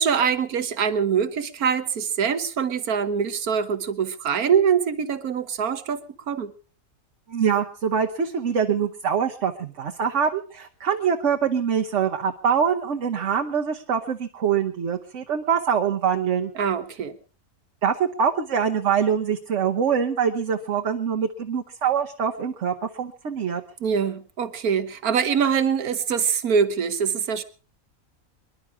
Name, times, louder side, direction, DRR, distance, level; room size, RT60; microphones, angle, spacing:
voice 1, 0.0-6.5 16.5-17.1 23.8-27.4, right 7 dB, 85° right, 12 dB, 1.7 m, -24 dB
voice 2, 7.3-16.5 17.8-23.6, right 7 dB, 55° right, 3 dB, 1.3 m, -24 dB
25.0 x 11.5 x 4.7 m, 0.39 s
omnidirectional pair, 1.5 m